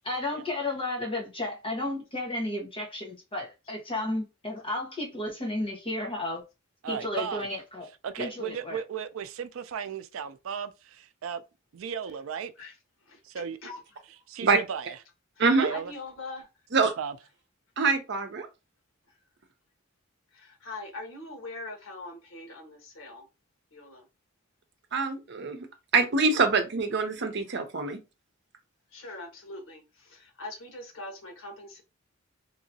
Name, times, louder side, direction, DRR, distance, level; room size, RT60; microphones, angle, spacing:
voice 1, 0.0-6.4 6.9-7.9 8.2-8.8, left 2 dB, 25° left, 1.2 m, -33 dB
voice 2, 6.8-7.5 8.0-11.4 11.7-12.5 13.2-13.6 14.3-15.0 15.6-15.9 17.0-17.2, right 7 dB, 90° right, 0.4 m, -35 dB
voice 3, 13.0-13.7 15.7-16.5 20.3-23.3 23.7-24.1 28.9-31.8, left 2 dB, 90° left, 1.2 m, -42 dB
voice 4, 15.4-15.7 16.7-16.9 17.8-18.5 24.9-25.7 25.9-28.0, right 4 dB, 60° right, 0.7 m, -25 dB
3.0 x 2.8 x 2.7 m
head